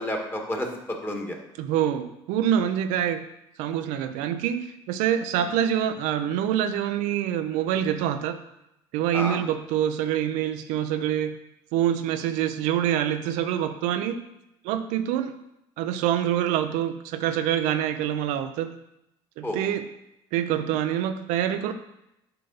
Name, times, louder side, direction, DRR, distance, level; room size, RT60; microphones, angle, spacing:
voice 1, 0.0-1.4 5.4-5.5 9.1-9.4 19.4-19.7, left 1 dB, 15° left, 2 dB, 1.7 m, -31 dB
voice 2, 1.6-3.2 3.6-8.4 8.9-11.4 11.7-14.2 14.6-15.3 15.8-18.7 19.4-19.9 20.3-21.7, right 10 dB, 75° right, 9 dB, 0.5 m, -26 dB
6.6 x 5.6 x 4.0 m, 0.85 s
supercardioid pair, 70°, 13 cm